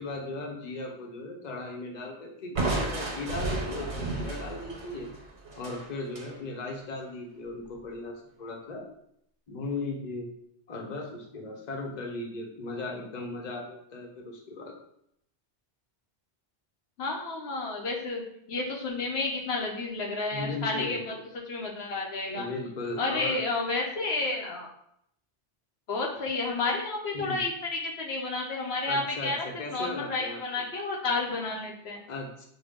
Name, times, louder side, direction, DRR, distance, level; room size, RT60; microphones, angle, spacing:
voice 1, 0.0-5.1 5.6-8.9 9.5-10.3 10.7-14.7 20.3-21.0 22.3-23.4 27.1-27.4 28.9-30.4 32.1-32.5, left 2 dB, 45° left, 1 dB, 0.8 m, -37 dB
Crushing, 2.6-6.3, right 2 dB, 75° right, 1.2 m, -33 dB
voice 2, 17.0-18.2 18.5-21.0 21.5-22.5 23.0-24.7 25.9-32.0, left 3 dB, 70° left, 0 dB, 0.9 m, -31 dB
5.2 x 2.2 x 3.5 m, 0.73 s
omnidirectional pair, 1.1 m